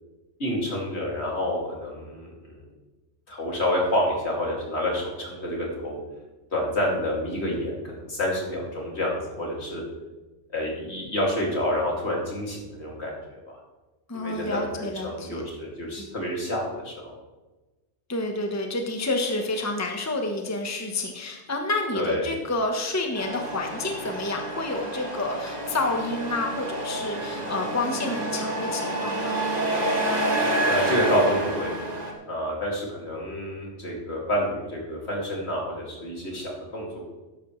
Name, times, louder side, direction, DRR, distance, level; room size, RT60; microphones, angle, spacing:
voice 1, 0.4-2.6 3.3-6.0 6.5-9.8 10.5-13.6 14.1-17.2 21.9-22.3 30.7-31.7 32.3-37.0, left 1 dB, 70° left, -2 dB, 3.0 m, -28 dB
voice 2, 14.1-15.5 16.0-16.1 18.1-29.4, left 2 dB, 15° left, 3 dB, 1.1 m, -29 dB
Truck, 23.2-32.1, right 1 dB, 35° right, 1.7 m, -28 dB
12.5 x 11.0 x 3.2 m, 1.2 s
omnidirectional pair, 1.2 m